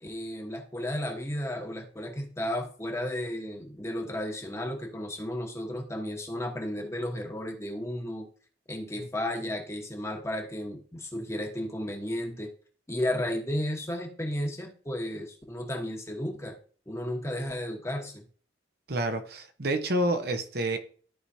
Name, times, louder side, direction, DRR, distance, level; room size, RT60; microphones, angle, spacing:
voice 1, 0.0-8.3 8.7-12.5 12.9-16.6 16.9-18.2, left 1 dB, 15° left, 1.3 m, -33 dB
voice 2, 18.9-20.8, right 1 dB, 60° right, 1.0 m, -28 dB
13.5 x 4.9 x 2.8 m
head